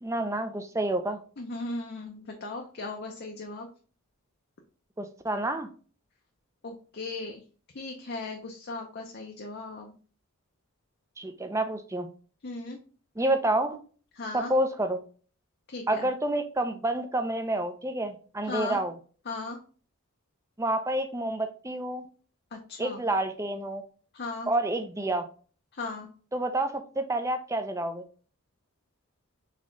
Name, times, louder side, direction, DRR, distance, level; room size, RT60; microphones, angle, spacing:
voice 1, 0.0-1.2 5.0-5.7 11.2-12.1 13.2-13.8 14.3-15.0 15.9-18.9 20.6-22.0 22.8-23.8 24.5-25.2 26.3-28.0, right 1 dB, 15° right, 7 dB, 0.5 m, -29 dB
voice 2, 1.4-3.7 6.6-7.4 7.7-10.0 12.4-12.8 14.2-14.5 15.7-16.1 18.4-18.8 19.3-19.6 22.5-23.0 24.1-24.5 25.7-26.1, left 3 dB, 50° left, 2 dB, 0.6 m, -37 dB
4.1 x 3.6 x 3.0 m, 0.40 s
head